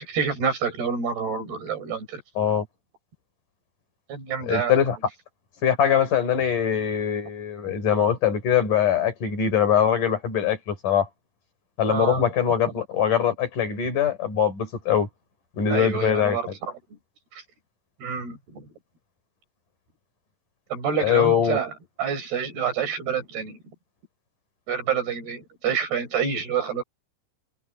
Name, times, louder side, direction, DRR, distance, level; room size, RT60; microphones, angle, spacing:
voice 1, 0.1-2.2 4.1-4.7 11.9-12.2 15.7-16.7 17.3-17.4 18.0-18.7 20.7-21.7 22.0-23.6 24.7-26.8, right 6 dB, 55° right, 6.8 m, -27 dB
voice 2, 4.4-5.0 5.6-11.1 11.8-15.1 15.6-16.4 21.0-21.6, left 8 dB, 45° left, 5.5 m, -22 dB
omnidirectional pair, 5.4 m